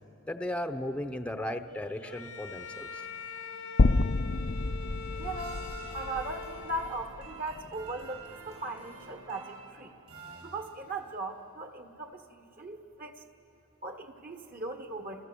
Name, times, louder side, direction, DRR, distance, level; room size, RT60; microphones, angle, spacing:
voice 1, 0.3-3.0, left 1 dB, 5° left, 7 dB, 0.8 m, -35 dB
Bowed string instrument, 2.0-7.3, left 5 dB, 80° left, 1.1 m, -43 dB
sound 1, 2.2-11.1, right 4 dB, 90° right, 7.5 m, -50 dB
sound 2, 3.8-8.0, left 3 dB, 45° left, 0.5 m, -29 dB
voice 2, 5.2-9.9 10.4-13.2 13.8-15.3, right 2 dB, 40° right, 6 dB, 1.4 m, -39 dB
29.5 x 29.0 x 7.0 m, 2.9 s
head